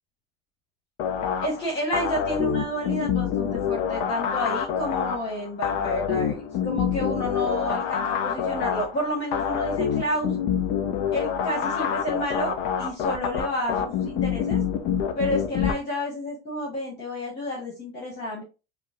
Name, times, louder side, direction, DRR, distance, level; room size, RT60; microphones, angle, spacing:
sound 1, 1.0-15.7, left 8 dB, 60° left, 0.7 m, -27 dB
voice 1, 1.4-10.4 11.1-14.6 15.2-18.4, equal, 35° left, -4 dB, 1.8 m, -30 dB
5.2 x 2.3 x 2.5 m, 0.29 s
supercardioid pair, 110°, 30 cm